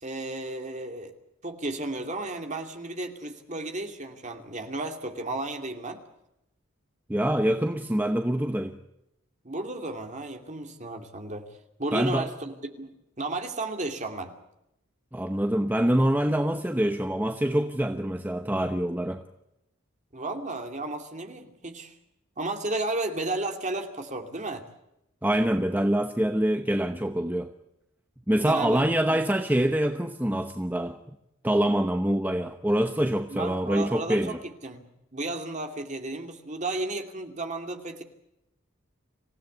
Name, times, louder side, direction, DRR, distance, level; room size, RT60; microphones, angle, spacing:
voice 1, 0.0-1.1 1.4-6.0 9.4-11.5 11.8-14.4 20.1-22.0 22.4-24.6 28.5-29.3 33.3-34.4 34.6-34.8 35.1-38.0, right 2 dB, 35° right, 2.6 m, -33 dB
voice 2, 7.1-8.8 11.9-12.3 15.1-19.2 25.2-27.5 28.3-31.0 31.4-34.4, right 1 dB, 10° right, 0.9 m, -25 dB
26.5 x 16.5 x 8.5 m
head